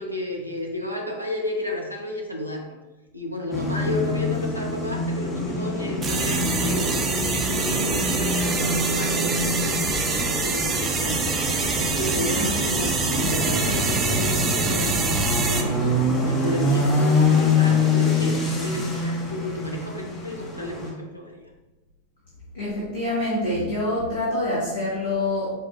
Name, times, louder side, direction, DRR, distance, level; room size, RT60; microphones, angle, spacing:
voice 1, 0.0-2.8 3.1-9.7 10.2-11.3 11.8-15.8 16.2-21.4, left 1 dB, 90° left, -1 dB, 0.5 m, -32 dB
sound 1, 3.5-20.9, left 2 dB, 20° left, 0.7 m, -25 dB
sound 2, 6.0-15.6, right 4 dB, 25° right, 0.4 m, -26 dB
voice 2, 12.1-12.5 22.5-25.5, left 1 dB, 65° left, -8 dB, 0.9 m, -26 dB
4.1 x 2.3 x 2.5 m, 1.1 s
figure-of-eight pair, 90°, 0 cm